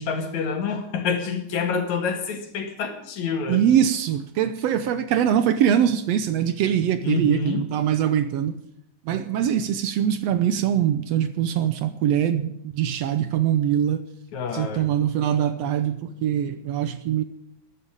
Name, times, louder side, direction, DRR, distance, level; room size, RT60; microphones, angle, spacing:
voice 1, 0.0-3.6 7.0-7.6 14.3-14.9, left 4 dB, 70° left, 3.2 m, -27 dB
voice 2, 3.5-8.6 9.0-14.0 14.5-17.2, right 9 dB, 70° right, 1.7 m, -23 dB
13.5 x 10.5 x 8.8 m
omnidirectional pair, 3.4 m